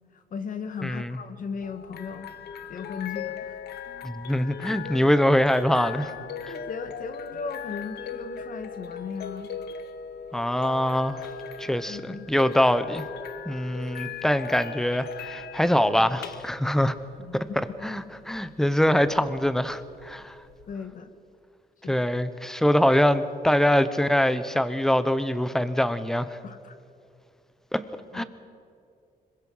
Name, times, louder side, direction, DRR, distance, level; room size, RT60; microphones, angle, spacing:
voice 1, 0.1-2.3 2.7-3.6 6.5-9.5 11.9-12.3 17.2-17.4 20.7-21.1 21.8-22.0 26.4-26.7 28.1-28.2, left 5 dB, 55° left, 8 dB, 1.8 m, -36 dB
voice 2, 0.8-1.2 4.0-6.1 10.3-11.3 11.6-13.0 13.4-16.9 17.3-17.4 17.8-20.4 21.9-26.4 27.7-27.8 28.1-28.2, equal, 5° left, 12 dB, 1.0 m, -23 dB
sound 1, 1.6-20.7, left 7 dB, 90° left, 1.1 m, -39 dB
26.0 x 22.5 x 5.6 m, 2.4 s
cardioid pair, 135°, 16 cm